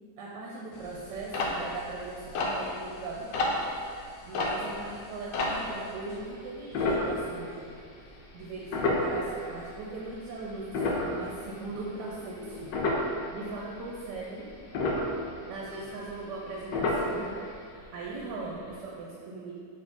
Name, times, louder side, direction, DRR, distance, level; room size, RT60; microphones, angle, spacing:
voice 1, 0.2-3.6 4.3-7.7 8.3-12.7 13.3-14.5 15.5-17.3 17.9-19.5, right 3 dB, 80° right, -4 dB, 1.2 m, -39 dB
sound 1, 0.8-6.0 6.7-7.7 8.0-8.2 8.6-10.0 10.4-13.3 13.6-14.1 14.5-16.5 16.7-17.5 17.8-17.9 18.2-18.4 18.7-18.8, left 2 dB, 90° left, 1.2 m, -30 dB
4.1 x 3.0 x 3.5 m, 2.3 s
omnidirectional pair, 1.9 m